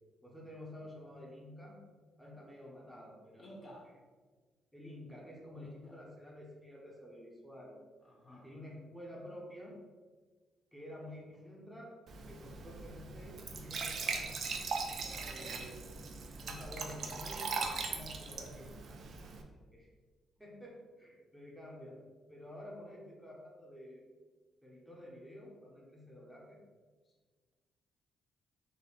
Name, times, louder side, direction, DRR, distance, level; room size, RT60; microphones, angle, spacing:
voice 1, 0.2-1.8 2.2-3.5 4.7-7.8 8.3-9.8 10.7-12.0 12.3-14.3 15.3-15.9 16.4-19.4 19.7-19.9 20.4-22.0 22.3-24.0 24.6-26.6, left 1 dB, ahead, -3 dB, 1.1 m, -50 dB
voice 2, 3.4-3.9 5.5-5.9 8.0-8.5 14.9-15.5 27.0-27.1, equal, 40° left, -4 dB, 1.3 m, -54 dB
Glass / Trickle dribble / Fill (with liquid), 12.1-19.4, right 4 dB, 65° right, 0.5 m, -40 dB
4.0 x 2.6 x 4.1 m, 1.4 s
supercardioid pair, 60°, 0 cm